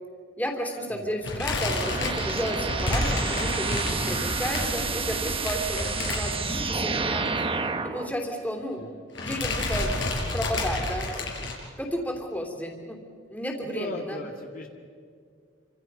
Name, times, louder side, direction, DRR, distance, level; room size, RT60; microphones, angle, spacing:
voice 1, 0.4-8.8 9.2-9.9 10.3-11.3 11.8-13.0 13.3-14.2, equal, 10° left, 2 dB, 3.1 m, -32 dB
sound 1, 1.2-6.8 7.1-7.3 7.5-7.6 8.6-8.9 9.2-11.5, left 2 dB, 75° left, 5.3 m, -30 dB
sound 2, 1.6-8.1, right 4 dB, 30° right, 1.2 m, -29 dB
voice 2, 3.8-4.2 5.7-6.0 13.6-14.7, left 1 dB, 50° left, 1 dB, 2.1 m, -37 dB
28.5 x 26.0 x 5.5 m, 2.1 s
head